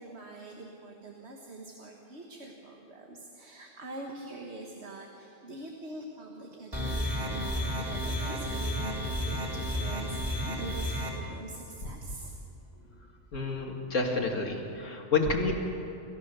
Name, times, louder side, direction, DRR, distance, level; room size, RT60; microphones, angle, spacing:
voice 1, 0.0-12.3, right 2 dB, 60° right, 1 dB, 1.8 m, -44 dB
sound 1, 6.7-11.1, equal, 20° right, 3.8 m, -32 dB
voice 2, 13.3-15.5, left 4 dB, 85° left, 1 dB, 2.5 m, -29 dB
28.5 x 14.0 x 6.8 m, 2.7 s
omnidirectional pair, 1.3 m